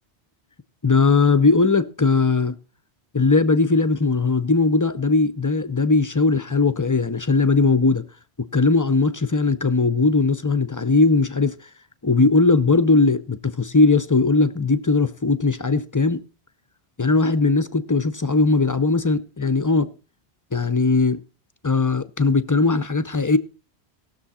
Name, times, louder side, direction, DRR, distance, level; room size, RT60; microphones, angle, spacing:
voice 1, 0.8-2.5 3.1-8.0 8.5-11.6 12.0-16.2 17.0-19.9 20.5-21.2 21.6-23.4, left 3 dB, 35° left, 0.3 m, -19 dB
18.5 x 6.8 x 4.2 m
omnidirectional pair, 1.1 m